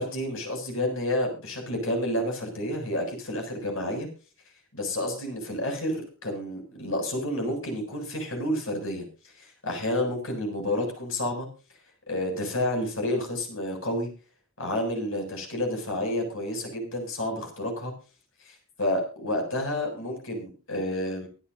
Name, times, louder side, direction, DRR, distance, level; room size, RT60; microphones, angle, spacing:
voice 1, 0.0-4.1 4.7-9.1 9.4-11.5 12.1-14.1 14.6-17.9 18.4-21.3, left 1 dB, 70° left, 3 dB, 7.4 m, -30 dB
24.5 x 12.0 x 2.8 m, 0.34 s
head